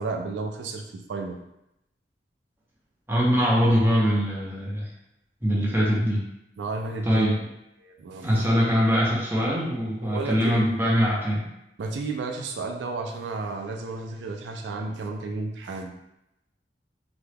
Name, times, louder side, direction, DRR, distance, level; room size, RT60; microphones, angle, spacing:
voice 1, 0.0-1.4 6.6-7.4 7.8-8.5 10.1-10.7 11.8-15.9, right 3 dB, 85° right, 3 dB, 0.4 m, -32 dB
voice 2, 3.1-4.9 5.4-6.2 7.0-7.4 8.2-11.4, equal, 15° right, -5 dB, 0.7 m, -22 dB
2.9 x 2.2 x 3.3 m, 0.84 s
head